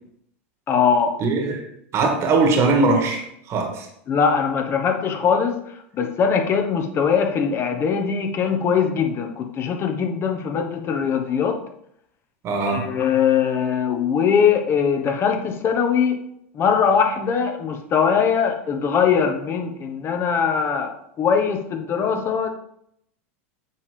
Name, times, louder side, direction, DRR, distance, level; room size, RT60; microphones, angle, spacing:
voice 1, 0.7-1.2 4.1-5.6 5.9-11.6 12.7-16.2 16.5-22.5, left 6 dB, 35° left, 5 dB, 1.2 m, -21 dB
voice 2, 1.2-1.6 1.9-3.9 12.4-12.9, right 3 dB, 40° right, 3 dB, 1.7 m, -20 dB
8.3 x 3.6 x 5.2 m, 0.73 s
hypercardioid pair, 105°, 7 cm